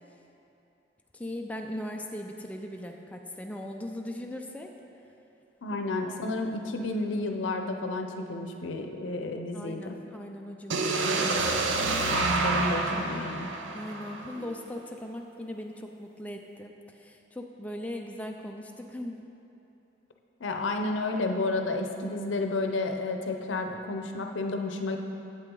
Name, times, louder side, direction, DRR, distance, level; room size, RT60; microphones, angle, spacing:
voice 1, 1.1-4.7 6.1-6.2 9.5-12.0 13.7-19.2, left 1 dB, 10° left, 2 dB, 0.3 m, -39 dB
voice 2, 5.6-10.0 12.1-13.5 20.4-25.0, left 2 dB, 85° left, 4 dB, 0.6 m, -31 dB
sound 1, 10.7-14.6, right 3 dB, 85° right, 0.6 m, -28 dB
8.4 x 7.8 x 3.8 m, 2.9 s
head